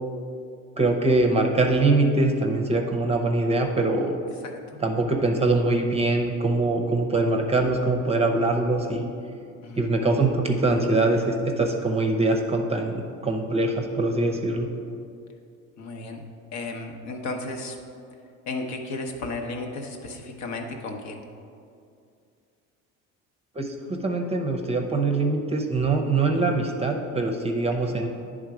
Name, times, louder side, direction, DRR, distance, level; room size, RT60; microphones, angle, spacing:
voice 1, 0.8-4.1 4.8-9.1 9.8-14.7 23.6-28.1, right 2 dB, 20° right, 3 dB, 0.7 m, -23 dB
voice 2, 15.8-16.2 16.5-17.8 18.5-21.2 27.9-28.0, left 2 dB, 60° left, 2 dB, 1.0 m, -34 dB
9.5 x 3.7 x 4.9 m, 2.4 s
supercardioid pair, 105°, 32 cm